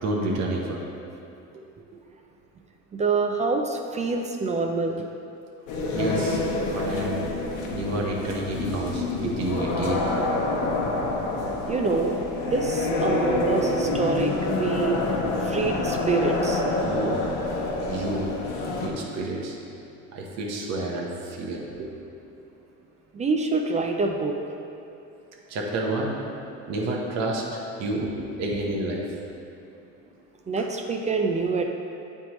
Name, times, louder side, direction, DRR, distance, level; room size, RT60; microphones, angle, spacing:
voice 1, 0.0-0.8 5.9-6.4 6.7-7.2 7.7-10.1 13.6-13.9 16.8-17.2 17.8-18.3 18.8-19.6 20.1-21.9 25.5-26.1 26.7-27.5 27.8-29.1 30.6-30.7, right 2 dB, 55° right, -2 dB, 1.0 m, -29 dB
voice 2, 2.9-5.0 9.2-9.3 11.7-12.2 12.5-15.0 15.4-16.6 23.1-24.4 30.5-31.6, right 4 dB, 25° right, 3 dB, 0.3 m, -26 dB
sound 1, 5.7-18.9, left 2 dB, 80° left, 0.8 m, -27 dB
9.2 x 3.5 x 3.0 m, 2.7 s
cardioid pair, 110°, 32 cm